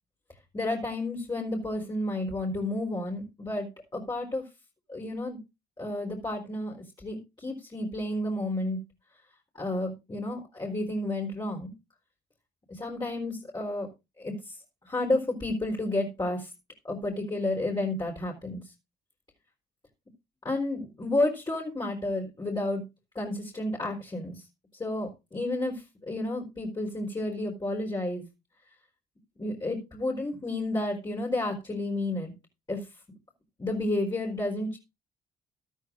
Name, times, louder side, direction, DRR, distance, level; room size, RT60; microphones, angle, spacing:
voice 1, 0.5-4.4 4.9-5.4 5.8-8.8 9.5-11.7 12.7-13.9 14.2-14.5 14.8-16.5 16.8-18.6 20.4-22.8 23.1-24.3 24.8-28.3 29.4-32.3 32.7-32.8 33.6-34.8, left 2 dB, 20° left, -1 dB, 4.5 m, -31 dB
14.0 x 12.5 x 2.6 m, 0.26 s
cardioid pair, 90°, 20 cm